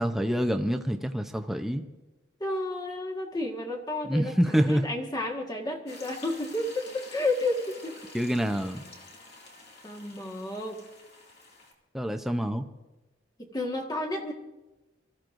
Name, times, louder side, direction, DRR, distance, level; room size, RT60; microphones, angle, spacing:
voice 1, 0.0-1.8 4.0-4.8 8.1-8.8 11.9-12.7, equal, ahead, 5 dB, 0.7 m, -26 dB
voice 2, 2.4-8.0 9.8-10.8 13.4-14.3, left 2 dB, 20° left, 1 dB, 1.6 m, -31 dB
sound 1, 5.9-11.7, left 2 dB, 55° left, 2.4 m, -49 dB
26.0 x 14.5 x 2.6 m, 1.1 s
head